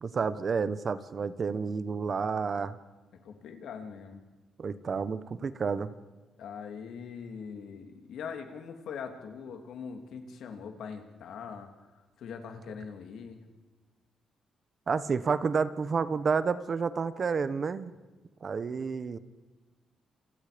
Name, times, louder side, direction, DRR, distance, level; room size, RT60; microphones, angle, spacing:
voice 1, 0.0-2.8 4.6-5.9 14.9-17.9 18.4-19.2, right 5 dB, 45° right, 13 dB, 1.2 m, -30 dB
voice 2, 3.2-4.2 6.4-11.7 12.2-13.4, left 6 dB, 80° left, 5 dB, 3.0 m, -42 dB
28.5 x 28.0 x 5.3 m, 1.3 s
cardioid pair, 110°, 0 cm